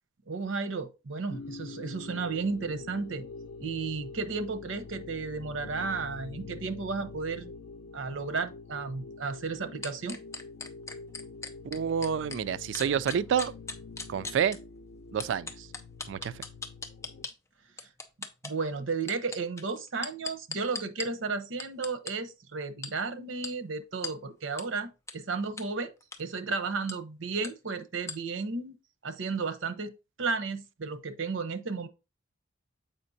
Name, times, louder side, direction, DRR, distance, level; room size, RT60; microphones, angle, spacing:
voice 1, 0.3-3.3 3.6-7.5 7.9-10.2 18.4-25.9 26.2-28.8 29.0-29.9 30.2-31.9, right 4 dB, 85° right, 0.8 m, -33 dB
sound 1, 1.3-17.3, left 4 dB, 85° left, 0.5 m, -45 dB
sound 2, 9.8-12.4 12.7-14.6 15.2-17.3 17.8-18.5 19.0-21.1 21.6-22.1 22.8-22.9 23.4-23.5 24.0-24.1 24.6-24.7 25.1-25.2 25.6-25.7 26.0-26.2 26.9-27.0 27.4-27.5 28.1-28.2, left 4 dB, 15° left, 0.6 m, -38 dB
voice 2, 11.7-13.5 14.1-14.6 15.1-15.7 16.1-16.4, right 8 dB, 70° right, 0.3 m, -28 dB
7.5 x 5.1 x 2.7 m
head